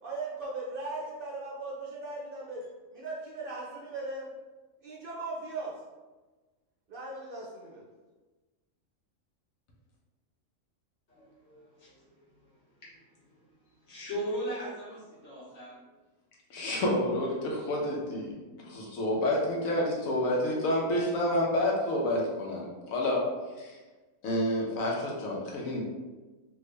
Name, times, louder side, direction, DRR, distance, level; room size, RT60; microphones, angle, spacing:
voice 1, 0.0-2.7 2.9-4.3 4.8-5.8 6.9-7.8, right 2 dB, 60° right, -3 dB, 0.6 m, -38 dB
voice 2, 11.1-12.2 12.8-12.9 13.3-13.4 13.8-15.8, right 1 dB, 65° left, -8 dB, 1.5 m, -38 dB
voice 3, 16.5-18.3 18.6-23.2 23.6-23.7 24.2-25.8, left 1 dB, 85° left, -2 dB, 1.2 m, -29 dB
3.4 x 2.6 x 3.2 m, 1.2 s
omnidirectional pair, 1.4 m